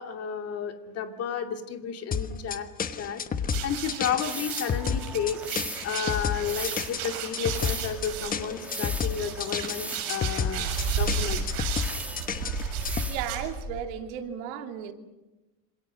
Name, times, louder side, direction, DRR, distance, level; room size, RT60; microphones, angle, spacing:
voice 1, 0.0-2.7 3.0-3.2 3.6-5.4 5.8-11.5, left 7 dB, 35° left, 5 dB, 2.5 m, -32 dB
sound 1, 2.1-13.1, left 6 dB, 20° left, 1.2 m, -31 dB
sound 2, 3.5-13.9, right 6 dB, 50° right, 6.7 m, -33 dB
sound 3, 4.2-13.5, right 1 dB, 5° right, 1.6 m, -40 dB
voice 2, 13.1-14.9, right 9 dB, 75° right, 5 dB, 3.0 m, -34 dB
27.0 x 27.0 x 6.4 m, 1.1 s
cardioid pair, 155°, 42 cm